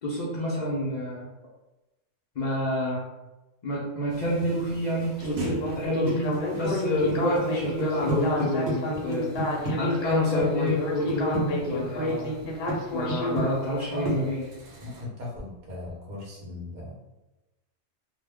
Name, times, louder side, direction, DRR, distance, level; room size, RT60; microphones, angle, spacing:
voice 1, 0.0-1.3 2.4-3.0 3.6-9.3 9.8-12.3 12.9-14.4, left 1 dB, 90° left, -6 dB, 0.3 m, -28 dB
sound 1, 4.1-15.0, right 2 dB, 80° right, 0.3 m, -44 dB
Speech synthesizer, 5.2-13.5, left 1 dB, 60° left, 0.8 m, -30 dB
sound 2, 6.1-9.7 10.1-10.8 11.1-12.2 12.4-12.8 13.1-13.8 14.0-14.1, right 1 dB, 15° right, 1.1 m, -30 dB
voice 2, 13.9-14.3 14.8-16.9, left 2 dB, 40° right, -4 dB, 0.8 m, -38 dB
2.3 x 2.1 x 3.3 m, 1.0 s
omnidirectional pair, 1.4 m